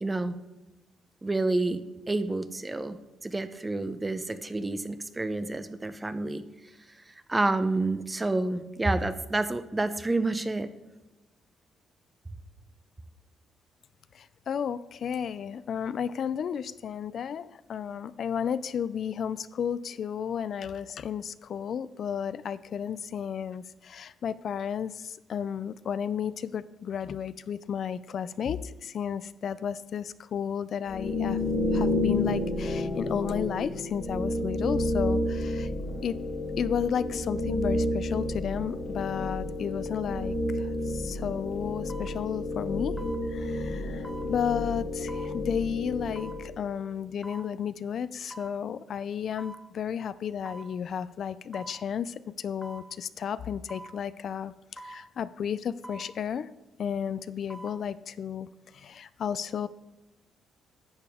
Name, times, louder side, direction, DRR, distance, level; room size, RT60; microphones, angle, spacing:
voice 1, 0.0-0.3 1.2-1.8 2.1-3.0 3.2-6.4 7.3-10.7, right 2 dB, 20° right, 12 dB, 0.6 m, -29 dB
voice 2, 14.1-31.4 31.7-35.7 36.0-36.1 36.6-43.0 43.3-56.5 56.8-59.7, left 8 dB, 60° left, 15 dB, 0.3 m, -33 dB
sound 1, 30.9-46.6, left 1 dB, 40° left, 1.4 m, -30 dB
sound 2, 40.7-40.9 41.9-42.1 43.0-43.2 44.0-44.3 45.1-45.3 46.2-46.4 47.2-47.5 48.3-48.6 49.4-49.6 50.4-50.7 51.5-51.8 52.6-52.9 53.7-53.9 54.8-55.0 55.8-56.1 57.3-57.8 58.2-58.3, right 1 dB, ahead, 0.9 m, -44 dB
10.5 x 6.9 x 3.5 m, 1.1 s
cardioid pair, 90°, 0 cm